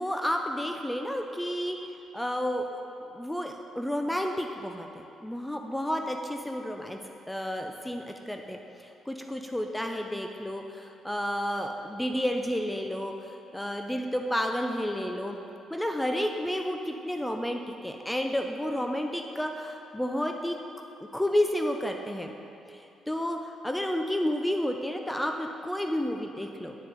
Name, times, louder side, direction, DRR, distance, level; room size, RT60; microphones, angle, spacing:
voice 1, 0.0-1.8 2.1-2.8 3.1-7.0 7.3-15.4 15.7-20.6 21.1-22.3 22.7-26.8, equal, 5° left, 4 dB, 0.4 m, -31 dB
9.2 x 4.7 x 3.8 m, 2.7 s
cardioid pair, 90°, 0 cm